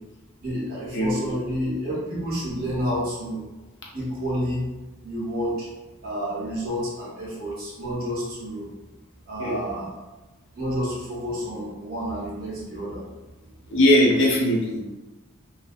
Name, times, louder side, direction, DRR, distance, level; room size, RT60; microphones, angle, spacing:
voice 1, 0.4-3.4 3.9-4.7 5.0-5.7 6.0-8.7 9.3-9.9 10.6-13.0, equal, 45° right, -6 dB, 0.8 m, -29 dB
voice 2, 0.9-1.3 9.4-9.6 13.7-14.8, left 1 dB, 60° left, -2 dB, 0.6 m, -20 dB
2.4 x 2.1 x 2.5 m, 1.1 s
head